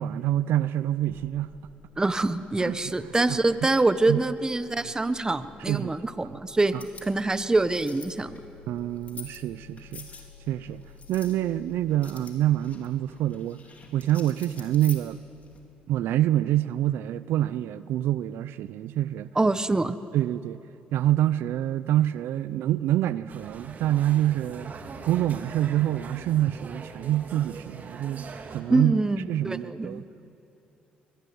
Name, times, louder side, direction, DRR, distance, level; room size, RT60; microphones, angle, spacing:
voice 1, 0.0-1.6 2.6-2.8 3.3-3.4 4.1-4.2 5.7-6.0 6.7-6.8 8.7-10.1 10.5-10.8 11.1-13.6 13.9-15.2 15.9-19.3 20.1-20.6 20.9-28.9 29.3-30.0, right 13 dB, 80° right, 0.5 m, -26 dB
sound 1, 1.1-12.1, left 7 dB, 80° left, 2.5 m, -53 dB
voice 2, 2.0-6.7 7.0-8.4 19.3-20.0 28.7-30.0, right 2 dB, 20° right, 1.1 m, -25 dB
sound 2, 6.6-15.6, left 4 dB, 40° left, 3.9 m, -48 dB
sound 3, 23.3-28.6, right 4 dB, 50° right, 2.3 m, -42 dB
23.0 x 19.5 x 9.5 m
supercardioid pair, 75°, 4 cm